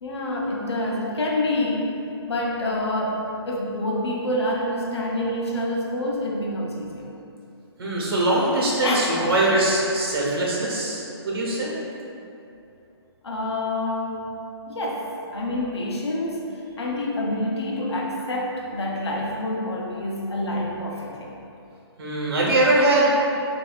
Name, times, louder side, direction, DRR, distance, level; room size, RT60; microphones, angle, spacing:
voice 1, 0.0-2.0 2.3-7.1 8.8-9.4 13.2-14.3 14.7-21.3, left 1 dB, 75° left, -2 dB, 0.8 m, -27 dB
voice 2, 7.8-11.7 22.0-23.1, right 1 dB, 60° right, -4 dB, 1.2 m, -22 dB
5.9 x 2.7 x 2.4 m, 2.7 s
hypercardioid pair, 175°, 14 cm